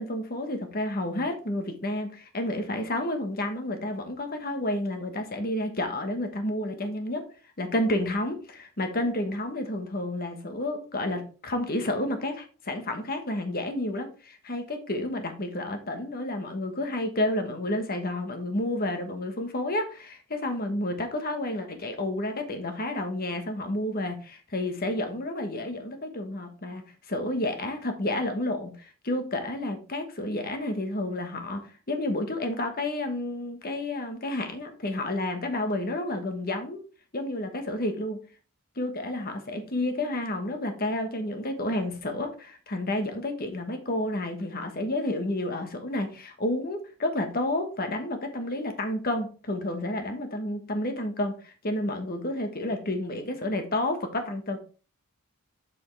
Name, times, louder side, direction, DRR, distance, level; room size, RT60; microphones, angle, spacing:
voice 1, 0.0-7.3 7.6-36.8 37.1-38.2 38.8-54.6, left 1 dB, 45° left, 6 dB, 1.3 m, -30 dB
7.0 x 6.3 x 3.3 m, 0.36 s
head